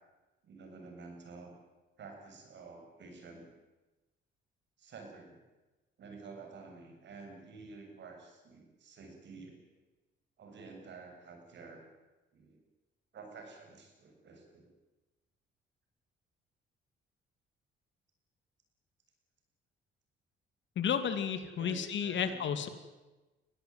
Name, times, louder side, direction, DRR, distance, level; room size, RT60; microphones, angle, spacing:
voice 1, 0.4-1.6 2.0-3.5 4.8-5.4 6.0-9.6 10.4-11.8 12.3-12.6 13.1-14.7 21.6-22.7, right 4 dB, 65° right, 4 dB, 7.5 m, -50 dB
voice 2, 20.8-22.7, left 8 dB, 70° left, 10 dB, 2.5 m, -32 dB
22.5 x 17.5 x 9.5 m, 1.1 s
cardioid pair, 90°, 20 cm